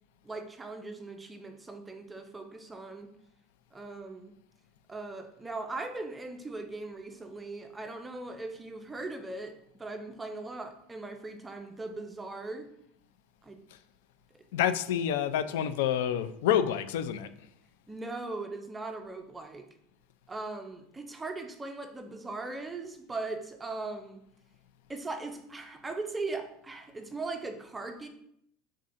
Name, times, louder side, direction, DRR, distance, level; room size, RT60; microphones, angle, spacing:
voice 1, 0.2-3.1 3.7-4.3 4.9-12.7 13.4-13.6 14.3-14.4 17.9-19.7 20.3-24.2 24.9-28.1, right 3 dB, 10° right, 6 dB, 0.3 m, -39 dB
voice 2, 14.5-17.3, left 10 dB, 90° left, 11 dB, 0.4 m, -28 dB
5.6 x 3.6 x 2.5 m, 0.73 s
cardioid pair, 180°, 0 cm